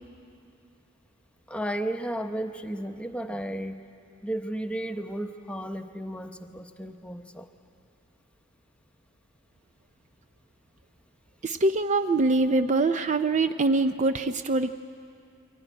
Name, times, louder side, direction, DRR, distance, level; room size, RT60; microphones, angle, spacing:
voice 1, 1.5-3.8 4.2-7.5, right 1 dB, 5° left, 6 dB, 0.8 m, -33 dB
voice 2, 11.4-14.7, right 3 dB, 35° right, 10 dB, 0.4 m, -24 dB
23.0 x 16.5 x 10.0 m, 2.6 s
head